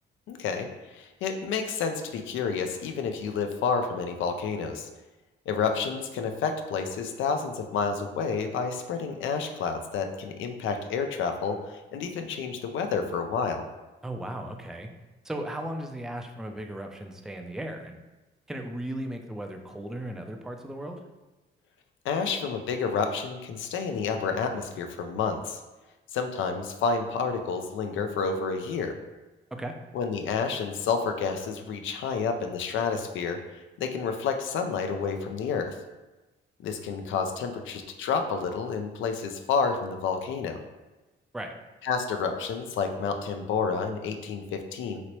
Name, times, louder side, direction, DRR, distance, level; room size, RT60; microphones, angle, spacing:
voice 1, 0.3-0.7 0.9-4.9 5.5-13.6 22.0-25.6 26.1-28.9 29.9-33.4 33.8-35.8 36.6-40.6 41.8-45.0, left 5 dB, 75° left, 6 dB, 0.4 m, -29 dB
voice 2, 14.0-14.9 15.2-18.0 18.5-21.0 29.5-29.7 41.3-41.5, right 1 dB, 5° right, 4 dB, 0.3 m, -36 dB
2.9 x 2.9 x 2.9 m, 1.1 s
cardioid pair, 90°, 20 cm